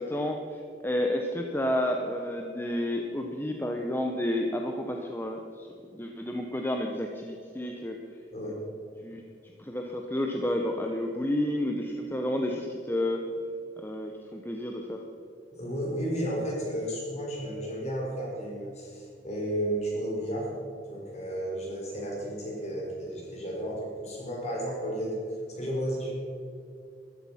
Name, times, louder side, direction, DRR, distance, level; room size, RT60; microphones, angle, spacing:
voice 1, 0.0-5.7 5.9-8.0 9.0-13.2 13.8-15.0, left 1 dB, 10° left, 2 dB, 0.8 m, -31 dB
voice 2, 15.5-20.5 20.9-25.2 25.6-26.1, equal, 35° left, -2 dB, 4.5 m, -33 dB
13.5 x 13.0 x 5.7 m, 2.5 s
head